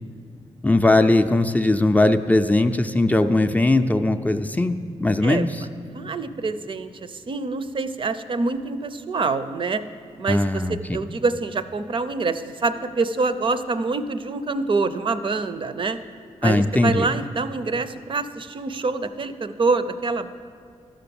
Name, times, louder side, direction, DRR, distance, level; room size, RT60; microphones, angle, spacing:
voice 1, 0.6-5.6 10.3-11.0 16.4-17.1, left 2 dB, 15° left, 7 dB, 0.4 m, -19 dB
voice 2, 5.9-9.8 10.2-16.0 16.4-20.3, right 3 dB, 45° right, 11 dB, 0.6 m, -26 dB
12.5 x 5.8 x 7.0 m, 2.3 s
cardioid pair, 90°, 12 cm